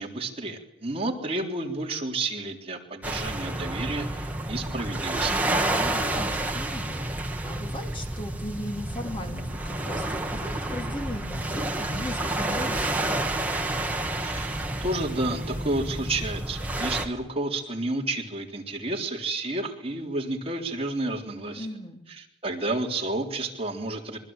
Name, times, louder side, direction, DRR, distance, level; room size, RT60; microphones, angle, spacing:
voice 1, 0.0-5.4 14.2-21.7 22.2-24.2, right 2 dB, 30° right, 1 dB, 3.6 m, -31 dB
sound 1, 3.0-17.1, right 1 dB, 10° right, 2.6 m, -29 dB
voice 2, 5.7-13.1 21.5-22.0, left 1 dB, 30° left, 3 dB, 3.6 m, -38 dB
26.5 x 23.5 x 8.9 m, 0.85 s
head